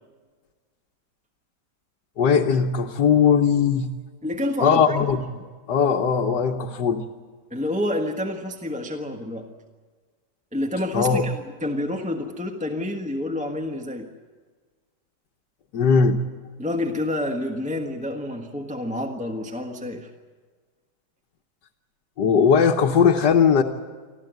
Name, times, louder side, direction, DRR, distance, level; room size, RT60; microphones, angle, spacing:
voice 1, 2.2-3.9 4.6-7.0 10.9-11.2 15.7-16.2 22.2-23.6, left 6 dB, 60° left, -1 dB, 1.6 m, -19 dB
voice 2, 4.2-5.0 7.5-9.5 10.5-14.1 16.6-20.1, left 1 dB, 5° right, 2 dB, 1.1 m, -28 dB
25.5 x 14.5 x 9.3 m, 1.5 s
omnidirectional pair, 2.1 m